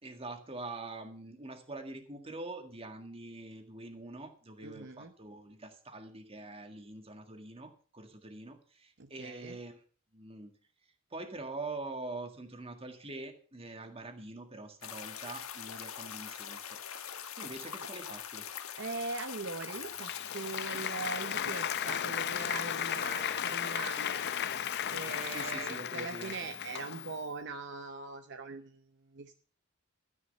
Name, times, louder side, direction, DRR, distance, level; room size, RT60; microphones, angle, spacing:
voice 1, 0.0-9.8 10.1-10.5 11.1-18.5 20.7-20.9 25.3-26.3, right 2 dB, 30° right, 6 dB, 1.9 m, -44 dB
voice 2, 4.6-5.1 9.0-9.6 17.6-17.7 18.8-24.2 24.9-29.3, right 4 dB, 55° right, 8 dB, 0.8 m, -41 dB
sound 1, 14.8-25.5, left 8 dB, 85° left, 1.2 m, -43 dB
Applause, 19.6-27.2, left 9 dB, 50° left, 0.6 m, -35 dB
13.0 x 10.0 x 5.4 m, 0.42 s
head